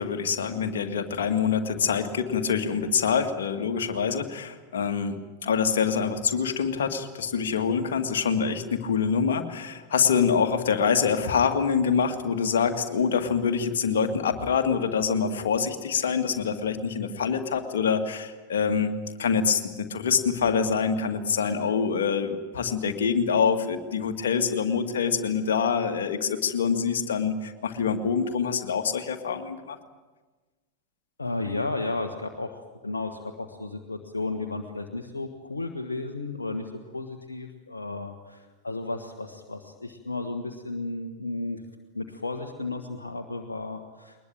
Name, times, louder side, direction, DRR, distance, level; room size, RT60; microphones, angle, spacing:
voice 1, 0.0-5.2 5.4-18.9 19.2-29.8, left 6 dB, 60° left, 6 dB, 2.0 m, -25 dB
voice 2, 31.2-41.6 41.9-44.2, left 2 dB, 75° left, 4 dB, 1.4 m, -33 dB
22.0 x 20.5 x 9.0 m, 1.3 s
figure-of-eight pair, 90°, 0 cm